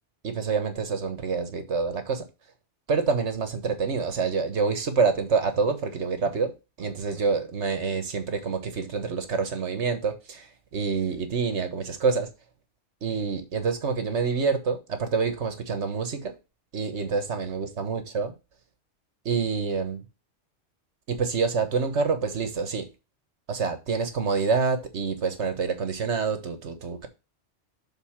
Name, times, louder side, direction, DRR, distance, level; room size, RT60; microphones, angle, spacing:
voice 1, 0.2-2.3 2.9-12.3 13.0-16.4 16.7-18.3 19.2-20.0 21.1-22.9 23.5-27.1, right 5 dB, 70° right, 1.5 m, -27 dB
6.8 x 3.9 x 5.7 m
omnidirectional pair, 1.2 m